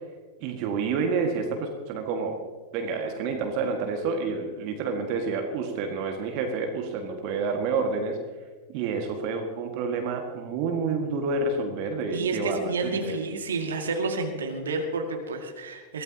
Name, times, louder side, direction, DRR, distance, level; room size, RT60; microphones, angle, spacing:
voice 1, 0.4-2.3 2.7-8.2 8.7-13.2, right 4 dB, 45° right, 3 dB, 1.8 m, -29 dB
voice 2, 12.1-16.0, right 3 dB, 65° right, 3 dB, 2.1 m, -30 dB
23.0 x 16.0 x 2.9 m, 1.4 s
figure-of-eight pair, 90°, 0 cm